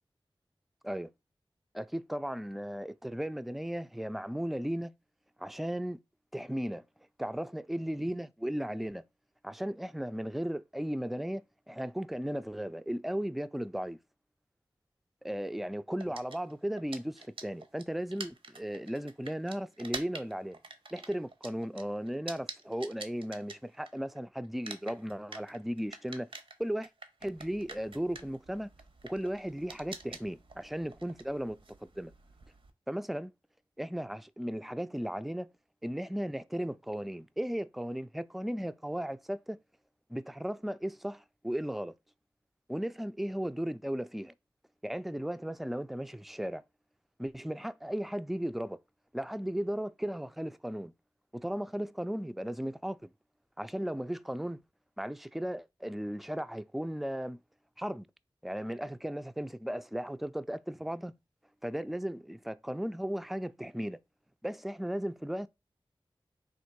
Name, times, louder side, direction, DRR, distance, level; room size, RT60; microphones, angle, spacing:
voice 1, 1.7-4.9 5.4-6.0 6.3-6.8 7.2-9.0 9.4-14.0 15.2-20.6 20.9-26.3 26.6-26.9 27.2-28.7 29.0-32.1 32.9-33.3 33.8-35.5 35.8-39.6 40.1-41.9 42.7-44.3 44.8-46.6 47.2-48.8 49.1-50.9 51.3-53.1 53.6-54.6 55.0-57.4 57.8-58.1 58.4-61.1 61.6-64.0 64.4-65.5, equal, ahead, 0.3 m, -36 dB
sound 1, 16.0-24.2 24.4-32.7, right 3 dB, 75° right, 0.7 m, -46 dB
3.6 x 2.5 x 4.4 m
cardioid pair, 45°, 9 cm